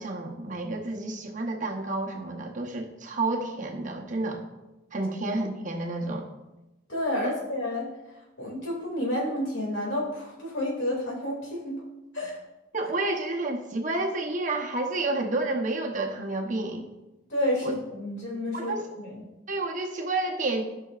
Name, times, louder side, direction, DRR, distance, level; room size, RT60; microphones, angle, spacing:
voice 1, 0.0-4.4 4.9-6.3 12.7-16.9 17.6-17.7 18.5-18.8 19.5-20.6, right 2 dB, 40° right, 2 dB, 0.9 m, -30 dB
voice 2, 6.9-7.9 8.4-11.8 12.1-12.4 17.3-19.2, left 1 dB, 65° left, -3 dB, 2.5 m, -30 dB
15.0 x 5.8 x 2.4 m, 1.0 s
head